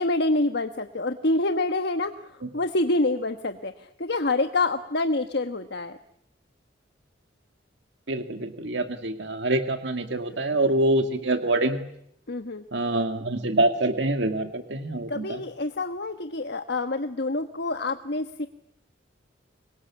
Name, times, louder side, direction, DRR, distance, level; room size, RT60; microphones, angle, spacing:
voice 1, 0.0-6.0 12.3-12.6 15.1-18.5, left 2 dB, 60° left, 8 dB, 1.3 m, -27 dB
voice 2, 8.1-11.8 12.7-15.4, right 2 dB, 65° right, 7 dB, 2.2 m, -25 dB
26.0 x 22.5 x 8.7 m, 0.73 s
head